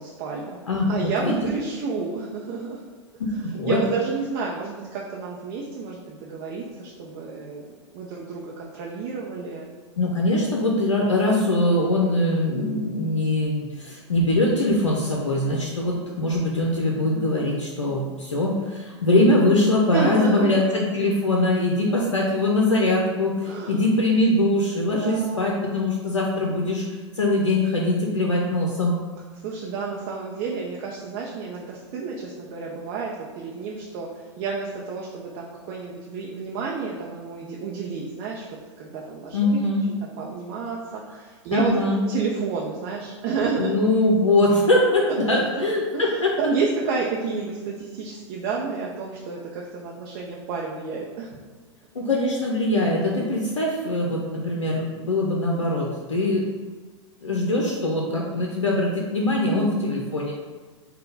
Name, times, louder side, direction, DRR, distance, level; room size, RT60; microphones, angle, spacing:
voice 1, 0.0-0.6 0.9-2.8 3.3-9.7 19.9-20.6 23.4-23.8 24.8-25.5 29.4-38.5 38.8-39.6 40.0-43.7 45.1-45.6 45.9-51.4 59.3-59.9, right 4 dB, 45° right, -2 dB, 0.5 m, -30 dB
voice 2, 0.7-1.3 3.2-3.8 10.0-26.8 27.1-29.0 39.3-39.8 41.5-42.0 43.6-46.3 51.9-56.5 57.2-60.3, left 1 dB, 85° left, -2 dB, 0.5 m, -22 dB
3.7 x 2.2 x 3.9 m, 1.4 s
figure-of-eight pair, 100°, 16 cm